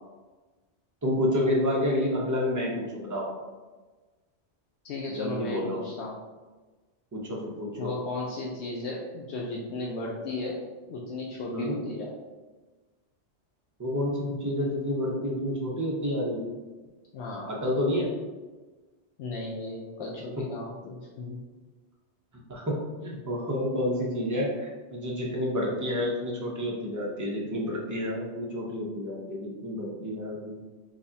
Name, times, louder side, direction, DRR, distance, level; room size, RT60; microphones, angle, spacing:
voice 1, 1.0-3.3 5.2-5.8 7.1-7.9 11.5-11.9 13.8-16.4 17.5-18.1 20.4-20.5 22.3-30.6, left 1 dB, 20° right, -2 dB, 0.5 m, -29 dB
voice 2, 4.8-6.1 7.8-10.6 10.9-12.1 17.1-17.5 19.2-21.4, left 2 dB, 75° left, -3 dB, 0.8 m, -35 dB
4.9 x 2.3 x 2.6 m, 1.3 s
omnidirectional pair, 1.2 m